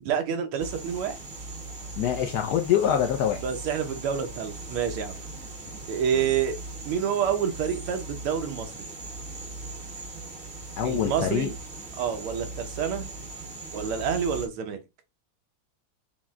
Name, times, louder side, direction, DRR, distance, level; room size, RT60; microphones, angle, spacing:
voice 1, 0.0-1.2 3.4-5.1 5.9-6.6 6.8-8.8 10.8-11.5 12.0-13.1 13.7-14.8, right 8 dB, 80° right, 1.7 m, -28 dB
sound 1, 0.6-14.5, right 2 dB, 35° right, 1.1 m, -39 dB
voice 2, 2.0-3.4 6.1-6.2 10.8-11.5, left 9 dB, 85° left, 0.8 m, -25 dB
5.8 x 2.1 x 3.6 m
omnidirectional pair, 2.4 m